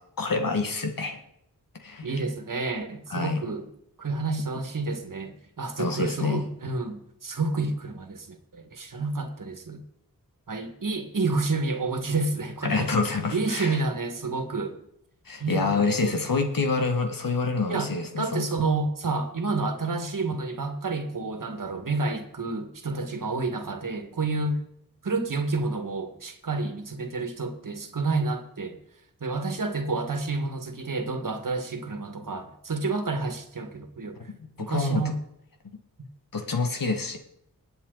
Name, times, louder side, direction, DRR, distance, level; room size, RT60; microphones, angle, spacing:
voice 1, 0.2-1.2 1.8-2.1 3.1-3.4 5.8-6.4 12.6-13.8 15.3-18.4 34.3-35.0 36.3-37.2, left 4 dB, 65° left, 5 dB, 1.9 m, -27 dB
voice 2, 2.0-3.7 4.0-9.8 10.5-12.9 13.3-14.8 15.4-16.2 17.7-17.9 18.2-24.6 25.0-28.8 29.2-34.2 34.6-35.2, right 3 dB, 60° right, 7 dB, 1.9 m, -29 dB
20.5 x 8.1 x 4.0 m, 0.77 s
cardioid pair, 45°, 36 cm